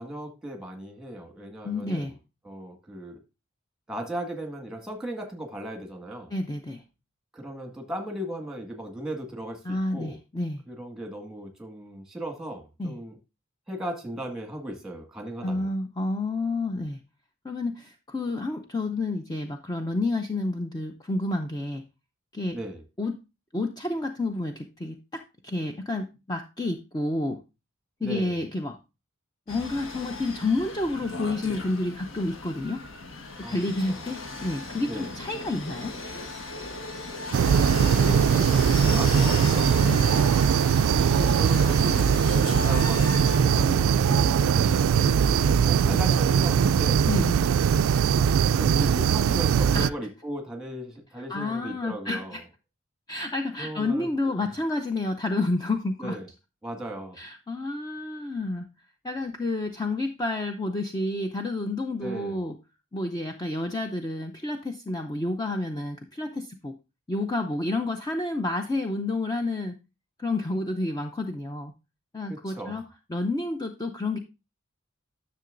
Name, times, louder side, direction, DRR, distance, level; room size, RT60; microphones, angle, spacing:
voice 1, 0.0-2.1 2.4-3.2 3.9-6.3 7.3-10.2 10.7-13.2 13.7-15.7 22.5-22.8 28.0-28.4 33.4-33.6 33.9-34.0 34.9-35.2 37.3-39.6 41.1-47.0 48.4-52.4 53.6-54.5 56.0-56.3 56.6-57.2 62.0-62.4 72.3-72.8, right 1 dB, 5° right, 3 dB, 1.8 m, -37 dB
voice 2, 1.6-2.1 6.3-6.8 9.6-10.6 12.8-13.0 15.4-17.0 17.4-21.8 22.3-22.6 23.0-23.1 23.5-27.4 28.0-28.8 29.5-32.8 33.5-35.9 39.8-40.1 45.9-46.0 47.1-47.4 49.7-49.9 51.3-52.4 53.1-56.2 57.2-58.6 59.0-62.5 62.9-66.7 67.1-69.8 70.2-71.7 72.1-72.8 73.1-74.2, left 2 dB, 20° left, 5 dB, 0.6 m, -29 dB
sound 1, 29.5-43.7, left 3 dB, 65° left, 1.3 m, -36 dB
sound 2, 34.0-40.6 40.9-49.9 50.2-50.6 50.9-51.0, right 1 dB, 50° left, 2.7 m, -42 dB
sound 3, 37.3-49.9, right 7 dB, 75° right, 0.3 m, -21 dB
10.5 x 6.8 x 2.5 m, 0.27 s
head